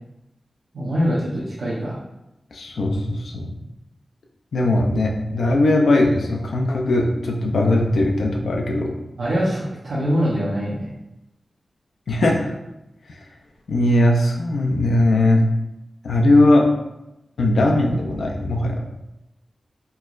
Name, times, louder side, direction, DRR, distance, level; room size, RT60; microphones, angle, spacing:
voice 1, 0.7-2.0 9.2-10.9, equal, 90° right, -9 dB, 0.6 m, -23 dB
voice 2, 2.5-3.6 4.5-9.0 12.1-12.5 13.1-13.3 13.7-15.5 16.0-16.7 17.4-18.8, left 1 dB, 90° left, 0 dB, 0.4 m, -19 dB
4.3 x 2.0 x 2.3 m, 0.91 s
wide cardioid pair, 80°, 0 cm